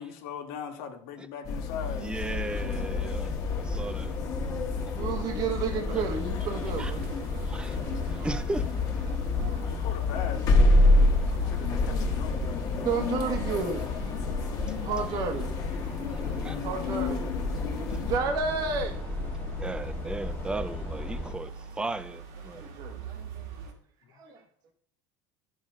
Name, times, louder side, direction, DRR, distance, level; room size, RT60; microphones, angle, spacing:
voice 1, 0.0-2.1 9.6-12.6, left 7 dB, 75° left, 1.6 m, -40 dB
sound 1, 1.4-18.2, left 2 dB, 45° left, 1.5 m, -29 dB
voice 2, 1.9-4.1 6.8-6.9 7.4-8.7 16.1-16.6 17.9-18.0 19.6-22.7, right 2 dB, 10° right, 0.5 m, -36 dB
sound 2, 2.2-21.3, left 4 dB, 20° left, 1.7 m, -34 dB
voice 3, 4.9-7.1 9.4-9.8 12.8-14.0 14.8-15.5 16.6-17.3 18.0-19.0 22.7-23.0 24.2-24.4, right 5 dB, 50° right, 1.3 m, -31 dB
sound 3, 6.0-23.7, right 4 dB, 80° right, 2.1 m, -44 dB
10.5 x 6.4 x 3.7 m
supercardioid pair, 130°, 9 cm